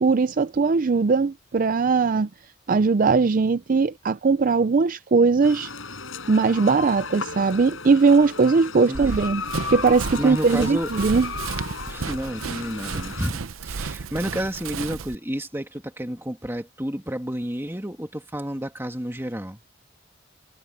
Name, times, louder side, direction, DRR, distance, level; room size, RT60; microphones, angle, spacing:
voice 1, 0.0-2.3 2.7-5.7 6.3-9.4 9.7-11.3, right 4 dB, 40° right, 0.4 m, -20 dB
sound 1, 5.4-13.3, left 4 dB, 70° left, 5.6 m, -35 dB
voice 2, 8.7-9.2 10.1-10.9 11.9-19.6, equal, 10° right, 2.3 m, -31 dB
Run, 8.9-15.2, right 4 dB, 75° right, 0.7 m, -33 dB
head